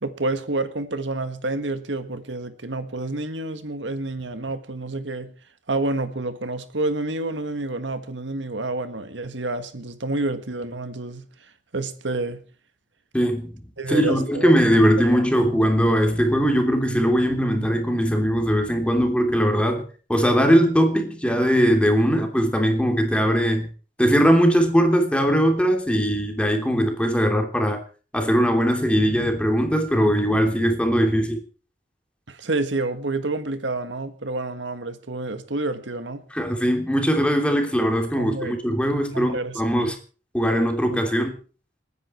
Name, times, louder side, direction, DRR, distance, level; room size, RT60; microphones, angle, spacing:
voice 1, 0.0-5.3 5.7-11.3 11.7-12.4 13.8-14.5 15.0-15.1 32.3-36.2 38.2-38.5 39.1-39.9 40.9-41.0, right 2 dB, 85° right, 1.7 m, -29 dB
voice 2, 13.1-13.6 13.9-23.7 24.0-27.8 28.1-31.4 36.3-39.9 40.3-41.4, equal, 5° left, 3.1 m, -20 dB
28.5 x 10.0 x 4.5 m
head